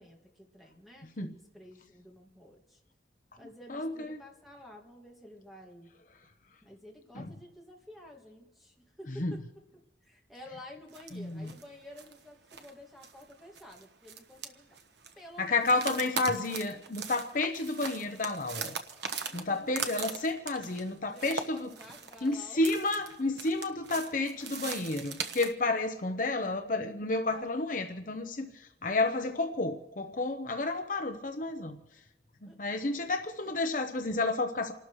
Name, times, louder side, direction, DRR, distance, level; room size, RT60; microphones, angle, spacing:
voice 1, 0.0-2.8 3.4-5.9 6.6-9.4 10.0-14.8 15.2-16.0 16.7-16.8 19.2-19.8 21.1-22.7 27.3-27.7 32.4-32.6 33.0-33.1 33.4-33.5, left 1 dB, ahead, 0 dB, 2.1 m, -51 dB
voice 2, 3.7-4.2 7.1-7.3 9.1-9.3 11.1-11.5 15.4-18.7 19.3-21.7 22.2-31.8 32.4-34.7, left 2 dB, 45° left, 6 dB, 0.9 m, -31 dB
sound 1, 10.9-11.2 11.4-11.6 12.0-12.2 12.5-12.7 13.0-15.1 15.6-25.5, right 6 dB, 75° right, 1.2 m, -40 dB
29.0 x 12.5 x 3.2 m, 1.1 s
head